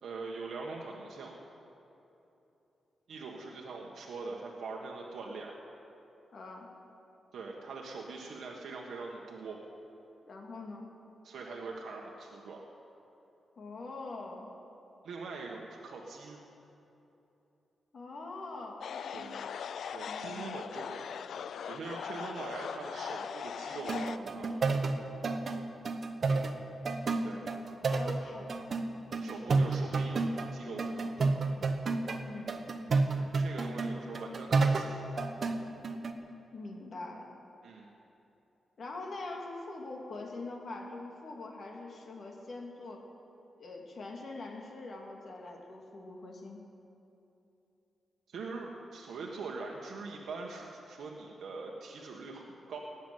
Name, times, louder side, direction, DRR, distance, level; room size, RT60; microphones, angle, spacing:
voice 1, 0.0-1.4 3.1-5.6 7.3-9.6 11.2-12.6 15.0-16.4 19.1-19.4 19.9-21.1 21.7-24.6 27.2-27.5 29.2-31.4 33.1-35.0 37.6-37.8 48.3-52.8, right 3 dB, 80° right, -1 dB, 1.5 m, -43 dB
voice 2, 6.3-6.7 10.2-10.9 13.6-14.5 17.9-19.4 20.0-20.5 27.3-27.4 27.8-28.6 32.3-32.5 36.5-37.3 38.8-43.0 43.6-46.6, left 2 dB, 55° left, 0 dB, 2.3 m, -43 dB
sound 1, 18.8-24.2, left 7 dB, 75° left, 0.4 m, -40 dB
sound 2, 23.8-30.5 30.8-32.2 32.5-36.1, right 3 dB, 45° right, 1.0 m, -31 dB
18.5 x 7.2 x 9.2 m, 3.0 s
wide cardioid pair, 115°, 0 cm